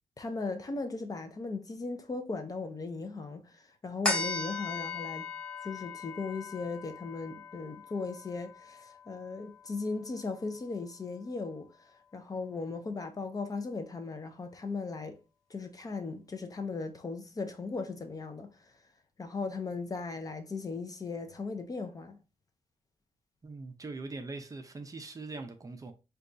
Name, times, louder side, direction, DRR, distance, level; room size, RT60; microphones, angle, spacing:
voice 1, 0.2-5.3 5.6-11.7 12.1-15.2 15.5-18.7 19.2-22.2, left 4 dB, 30° left, 0.4 m, -37 dB
sound 1, 4.0-10.8 11.3-11.4, left 3 dB, 10° left, 0.8 m, -38 dB
voice 2, 23.4-25.9, right 3 dB, 30° right, 0.4 m, -42 dB
3.9 x 2.3 x 2.5 m
wide cardioid pair, 145°, 12 cm